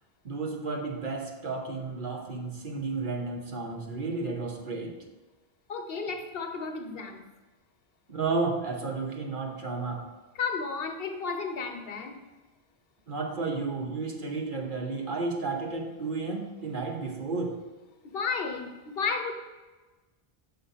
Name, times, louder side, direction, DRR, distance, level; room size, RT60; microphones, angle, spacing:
voice 1, 0.2-5.0 8.1-10.1 13.1-17.6, right 3 dB, 55° right, 1 dB, 1.1 m, -32 dB
voice 2, 5.7-7.2 10.4-12.2 18.0-19.3, left 5 dB, 70° left, 5 dB, 1.0 m, -33 dB
6.6 x 4.0 x 5.6 m, 1.2 s
omnidirectional pair, 1.0 m